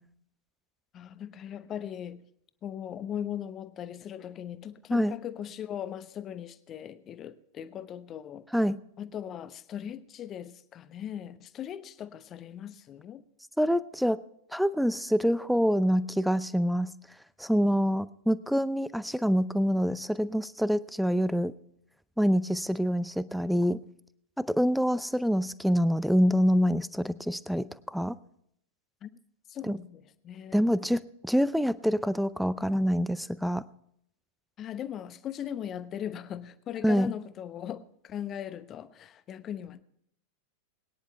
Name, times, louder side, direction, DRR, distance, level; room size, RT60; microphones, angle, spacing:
voice 1, 0.9-2.2 2.6-8.5 9.0-13.2 29.0-29.1 29.5-30.7 34.6-39.8, left 9 dB, 30° left, 1.0 m, -39 dB
voice 2, 13.6-14.2 14.5-16.9 17.4-21.5 22.2-23.8 24.4-28.1 29.6-29.8 30.5-33.6 36.8-37.1, equal, ahead, 0.6 m, -26 dB
22.0 x 10.5 x 3.3 m
figure-of-eight pair, 90°, 0 cm